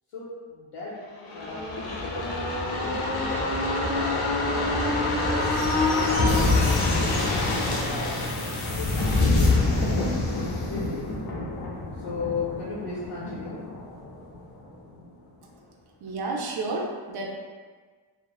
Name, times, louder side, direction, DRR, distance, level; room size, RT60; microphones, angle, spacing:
voice 1, 0.1-0.9 1.3-2.2 2.6-5.4 5.9-8.1 8.8-11.1 12.0-13.6, left 4 dB, 90° left, -8 dB, 0.7 m, -36 dB
sound 1, 1.2-14.7 15.0-15.1, left 2 dB, 50° left, 0.5 m, -26 dB
voice 2, 16.0-17.4, right 2 dB, 55° right, -1 dB, 0.5 m, -31 dB
3.0 x 2.1 x 2.3 m, 1.5 s
wide cardioid pair, 130°, 49 cm